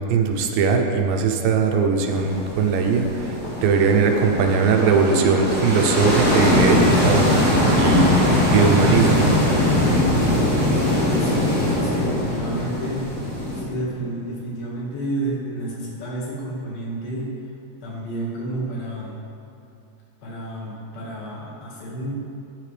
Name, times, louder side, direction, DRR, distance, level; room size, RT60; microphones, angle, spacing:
voice 1, 0.1-9.4, right 5 dB, 80° right, 4 dB, 2.3 m, -20 dB
sound 1, 2.0-13.6, left 1 dB, 25° left, 2.0 m, -21 dB
voice 2, 11.2-13.1 13.6-17.3 17.8-19.2 20.2-22.2, right 1 dB, 85° left, -4 dB, 3.7 m, -30 dB
12.5 x 9.1 x 3.3 m, 2.5 s
omnidirectional pair, 4.1 m